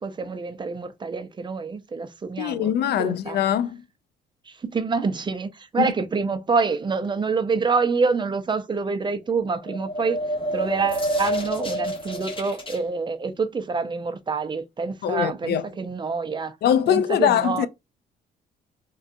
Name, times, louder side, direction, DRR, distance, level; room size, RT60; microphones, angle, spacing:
voice 1, 0.0-3.4 4.5-10.2 10.5-16.6 16.9-17.7, right 4 dB, 25° right, 0.5 m, -27 dB
voice 2, 2.4-3.8 5.8-5.9 15.0-15.6 16.6-17.7, left 10 dB, 65° left, 0.4 m, -22 dB
sound 1, 9.6-12.8, right 1 dB, 30° left, 1.1 m, -28 dB
3.7 x 2.3 x 2.4 m
cardioid pair, 110°, 18 cm